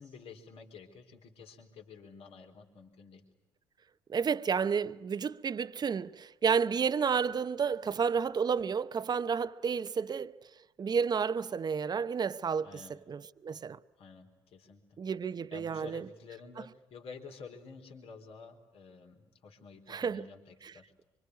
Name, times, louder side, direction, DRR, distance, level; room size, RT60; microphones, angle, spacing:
voice 1, 0.0-3.2 12.6-13.0 14.0-15.0 15.5-20.9, left 5 dB, 65° left, 4.0 m, -50 dB
voice 2, 4.1-10.3 10.8-12.8 13.1-13.8 15.0-16.1 19.9-20.3 20.6-20.7, right 6 dB, 40° right, 0.9 m, -31 dB
25.5 x 25.0 x 9.5 m
hypercardioid pair, 60°, 11 cm